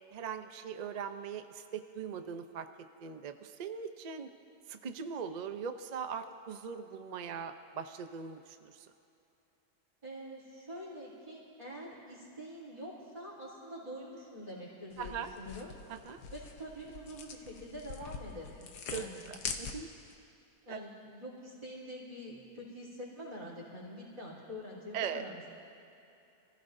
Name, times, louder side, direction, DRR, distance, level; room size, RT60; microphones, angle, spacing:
voice 1, 0.1-2.7 3.0-4.3 4.7-8.9 15.0-15.3 15.9-16.2 18.9-19.9 20.7-20.8 24.9-25.2, right 7 dB, 60° right, 8 dB, 0.4 m, -40 dB
voice 2, 10.0-15.7 16.3-19.3 20.6-25.5, equal, 20° right, -12 dB, 3.6 m, -46 dB
sound 1, 14.9-20.1, left 5 dB, 85° left, 1.6 m, -44 dB
26.5 x 15.5 x 2.7 m, 2.9 s
omnidirectional pair, 1.7 m